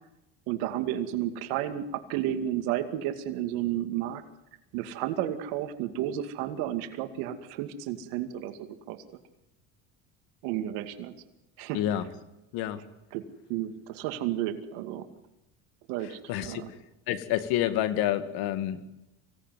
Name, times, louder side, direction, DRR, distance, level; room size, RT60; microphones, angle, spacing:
voice 1, 0.5-4.2 4.7-9.0 10.4-11.1 11.6-11.8 13.1-13.2 13.5-15.0 15.9-16.7, right 12 dB, 75° right, 8 dB, 2.5 m, -32 dB
voice 2, 11.7-12.0 12.5-12.8 16.3-16.6 17.1-18.8, left 12 dB, 70° left, 11 dB, 2.3 m, -28 dB
25.0 x 17.5 x 9.5 m, 0.94 s
supercardioid pair, 110°, 38 cm